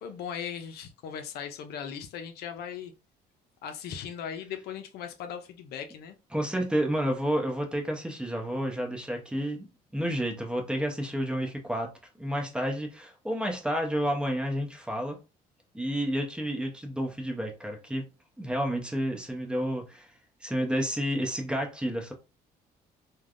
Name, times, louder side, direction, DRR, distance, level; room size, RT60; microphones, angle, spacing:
voice 1, 0.0-2.9 3.6-6.2, left 8 dB, 70° left, 0.5 m, -38 dB
voice 2, 6.3-11.9 12.2-15.2 15.7-18.1 18.4-20.1 20.4-22.1, equal, 5° right, 0.8 m, -30 dB
3.3 x 2.2 x 2.4 m
cardioid pair, 110°, 17 cm